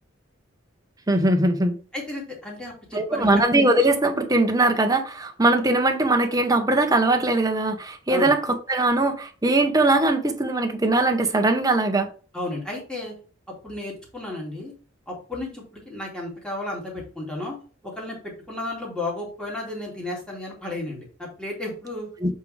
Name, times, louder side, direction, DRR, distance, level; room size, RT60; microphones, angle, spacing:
voice 1, 1.1-1.7 2.9-12.1 22.2-22.3, right 2 dB, 20° right, 1.0 m, -21 dB
voice 2, 1.9-3.3 8.1-8.3 12.3-13.1 13.6-14.7 15.1-17.6 17.8-22.3, left 2 dB, 5° left, 2.5 m, -33 dB
7.6 x 4.8 x 3.4 m
head